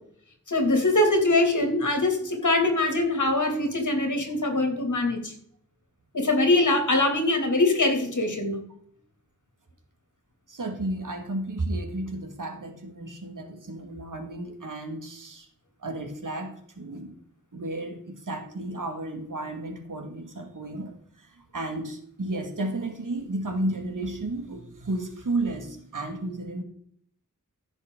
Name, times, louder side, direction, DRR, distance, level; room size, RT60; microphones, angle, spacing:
voice 1, 0.5-5.3 6.1-8.6, left 2 dB, 65° left, 4 dB, 2.6 m, -23 dB
voice 2, 10.5-15.5 15.8-17.2 17.5-26.6, right 2 dB, 75° right, 5 dB, 2.1 m, -33 dB
15.0 x 6.4 x 3.8 m, 0.65 s
wide cardioid pair, 65°, 32 cm